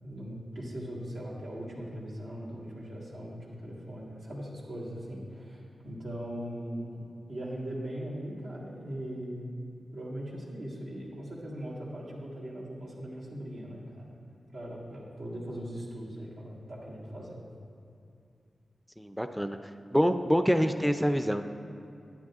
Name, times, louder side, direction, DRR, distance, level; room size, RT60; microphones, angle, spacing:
voice 1, 0.0-7.0 7.3-9.6 9.9-14.1 14.5-17.4, equal, 85° right, -7 dB, 1.8 m, -40 dB
voice 2, 19.0-19.6 19.9-21.4, equal, ahead, 8 dB, 0.4 m, -26 dB
10.5 x 9.0 x 2.4 m, 2.5 s
cardioid pair, 45°, 0 cm